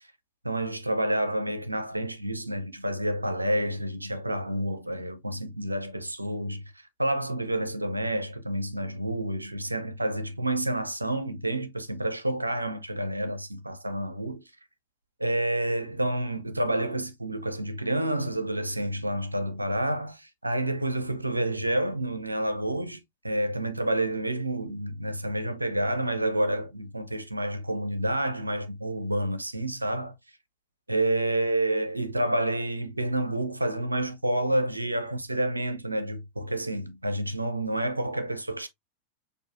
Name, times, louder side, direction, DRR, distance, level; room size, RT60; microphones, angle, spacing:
voice 1, 0.4-6.6 7.0-14.4 15.2-30.1 30.9-38.7, right 1 dB, 85° right, 0.6 m, -29 dB
6.2 x 2.6 x 2.5 m
figure-of-eight pair, 90°, 0 cm